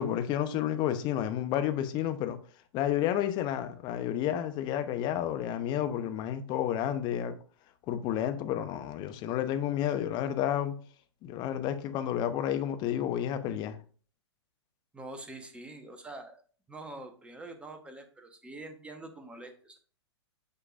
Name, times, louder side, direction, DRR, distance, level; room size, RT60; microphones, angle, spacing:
voice 1, 0.0-2.4 2.7-7.3 7.9-10.7 11.2-13.8, left 10 dB, 30° left, 0.9 m, -30 dB
voice 2, 14.9-16.4 16.7-19.8, right 2 dB, 5° right, 1.2 m, -45 dB
9.2 x 5.8 x 2.6 m
figure-of-eight pair, 105°, 15 cm